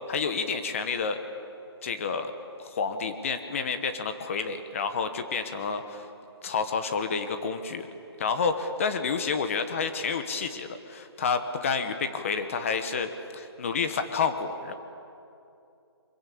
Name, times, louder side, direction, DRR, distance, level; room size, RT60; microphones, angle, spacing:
voice 1, 0.1-1.2 1.8-2.3 2.6-6.1 6.4-7.9 8.2-14.7, left 5 dB, 30° left, 8 dB, 1.2 m, -29 dB
23.5 x 22.5 x 8.5 m, 2.7 s
hypercardioid pair, 170°, 14 cm